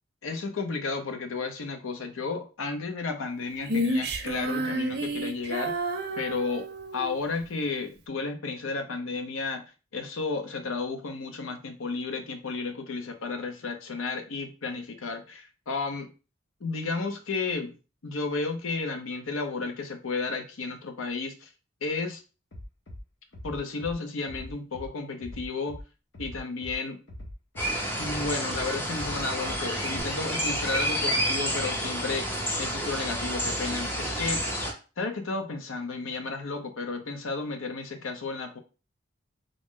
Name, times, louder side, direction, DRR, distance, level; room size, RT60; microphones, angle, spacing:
voice 1, 0.2-5.8 6.2-6.7 6.9-9.6 9.9-16.1 16.6-17.7 18.0-21.5 21.8-22.2 23.4-25.8 26.2-27.0 28.0-34.4 35.0-38.6, left 4 dB, 90° left, 6 dB, 0.6 m, -33 dB
Female singing, 3.7-7.2, right 1 dB, 50° right, 0.5 m, -30 dB
Bass drum, 22.5-23.0 23.3-23.9 24.3-24.9 25.2-25.8 26.1-26.7 27.1-27.7 28.0-28.6 29.0-29.6 29.9-30.0, left 1 dB, 60° left, 0.8 m, -42 dB
sound 1, 27.6-34.7, equal, 10° left, 0.6 m, -30 dB
3.7 x 2.1 x 3.6 m, 0.34 s
head